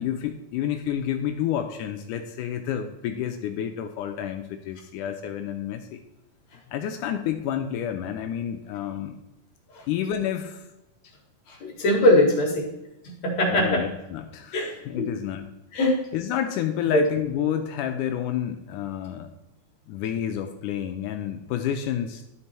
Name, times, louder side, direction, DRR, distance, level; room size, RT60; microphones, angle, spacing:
voice 1, 0.0-6.0 6.7-9.2 9.9-10.6 13.5-15.4 16.1-19.3 19.9-22.2, left 10 dB, 80° left, 5 dB, 2.0 m, -29 dB
voice 2, 11.5-12.7 13.0-13.9 14.5-14.7 15.7-16.0 16.9-17.0, left 1 dB, 55° left, -1 dB, 2.7 m, -21 dB
12.5 x 4.4 x 4.3 m, 0.94 s
omnidirectional pair, 3.9 m